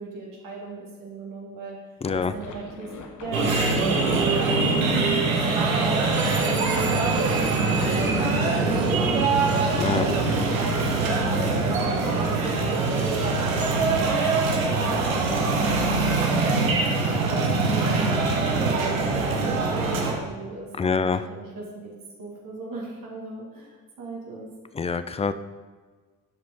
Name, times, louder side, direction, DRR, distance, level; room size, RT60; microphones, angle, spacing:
voice 1, 0.0-1.8 2.3-2.9 3.2-9.5 10.0-11.3 11.6-12.9 13.1-15.6 16.6-16.8 17.2-21.9 22.2-24.5 24.8-24.9, right 3 dB, 55° right, -3 dB, 1.8 m, -38 dB
sound 1, 2.0-8.7, left 4 dB, 50° left, 1.1 m, -41 dB
sound 2, 3.3-20.1, right 3 dB, 85° right, 0.9 m, -23 dB
voice 2, 20.8-21.3 24.7-25.3, left 5 dB, 15° left, 12 dB, 0.4 m, -25 dB
11.5 x 5.0 x 3.6 m, 1.4 s
figure-of-eight pair, 45°, 40 cm